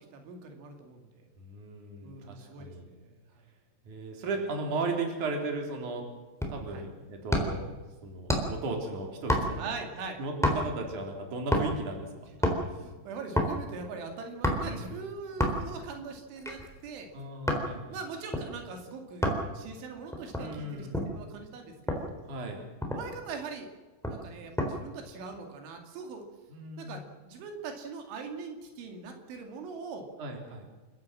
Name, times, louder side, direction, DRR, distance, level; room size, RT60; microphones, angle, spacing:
voice 1, 0.1-1.2 2.0-3.2 6.7-6.8 9.6-10.2 12.3-17.1 17.9-19.3 19.5-22.2 22.9-23.7 24.1-26.3 26.8-30.1, right 4 dB, 85° right, 4 dB, 4.8 m, -42 dB
voice 2, 1.4-2.8 3.9-6.0 6.5-7.6 8.0-9.7 10.2-12.1 14.6-14.9 17.1-18.0 20.4-21.0 22.3-22.6 26.5-27.1 30.2-30.7, right 3 dB, 45° right, 2 dB, 4.8 m, -36 dB
sound 1, 6.4-6.7 7.3-7.7 8.3-8.7 9.3-9.8 10.4-10.8 11.5-11.9 12.2-12.6 13.4-13.6 14.4-14.8 15.4-15.8 16.3-17.7 18.3-18.5 19.2-19.5 20.1-21.2 21.9-22.1 22.5-22.6 22.8-23.2 24.0-24.7 25.1-25.4, equal, ahead, 2.9 m, -29 dB
29.0 x 14.5 x 7.5 m, 1.3 s
omnidirectional pair, 5.3 m